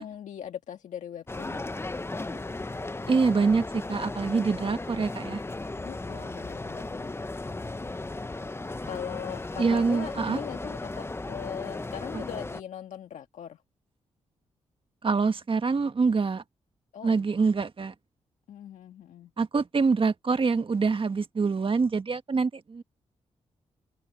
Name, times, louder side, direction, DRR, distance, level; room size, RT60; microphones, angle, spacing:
voice 1, 0.0-1.6 5.8-7.1 8.8-13.6 16.9-17.5 18.5-19.3, left 9 dB, 80° left, 1.6 m, -40 dB
sound 1, 1.3-12.6, left 2 dB, 20° left, 0.9 m, -36 dB
voice 2, 3.1-5.4 9.6-10.4 12.1-12.2 15.0-16.4 17.0-17.9 19.4-22.8, right 4 dB, 45° right, 1.7 m, -25 dB
supercardioid pair, 55°, 12 cm